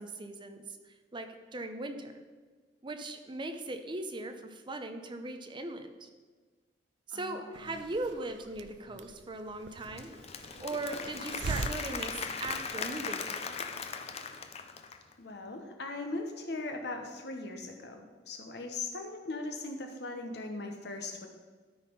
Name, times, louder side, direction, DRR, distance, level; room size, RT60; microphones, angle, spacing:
voice 1, 0.0-2.2 2.8-6.1 7.1-13.5, right 2 dB, 25° right, 6 dB, 0.6 m, -39 dB
voice 2, 7.1-7.6 15.2-21.3, left 2 dB, 65° left, 4 dB, 1.1 m, -39 dB
Hiss, 7.5-13.0, right 4 dB, 80° right, 0.4 m, -42 dB
Applause / Crowd, 9.7-15.1, left 5 dB, 35° left, 0.5 m, -39 dB
12.5 x 4.2 x 5.4 m, 1.4 s
head